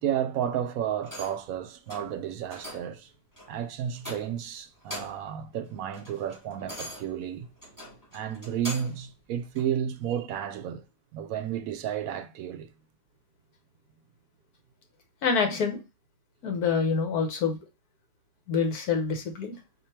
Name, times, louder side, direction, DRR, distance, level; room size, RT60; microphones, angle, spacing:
voice 1, 0.0-3.1 3.5-7.5 8.1-10.8 11.1-12.7, right 9 dB, 70° right, 1.0 m, -32 dB
sound 1, 1.0-1.5 1.9-2.1 2.5-2.9 3.4-3.5 4.0-4.5 4.8-5.3 5.7-9.0 9.5-9.7, equal, 15° left, 1.6 m, -42 dB
voice 2, 15.2-15.8 16.4-17.6 18.5-19.6, left 5 dB, 80° left, 1.6 m, -26 dB
4.4 x 2.7 x 4.3 m
omnidirectional pair, 1.6 m